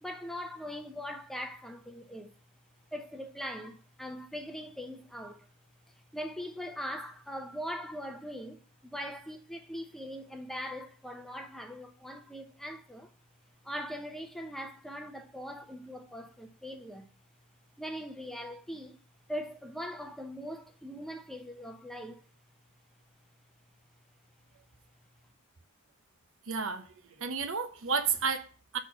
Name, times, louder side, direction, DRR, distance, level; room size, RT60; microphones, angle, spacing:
voice 1, 0.0-2.3 2.9-5.5 6.1-13.1 13.6-17.1 17.8-18.9 19.3-22.2, equal, ahead, 0.7 m, -41 dB
voice 2, 26.5-28.8, right 5 dB, 65° right, 0.9 m, -32 dB
6.5 x 4.3 x 6.0 m
head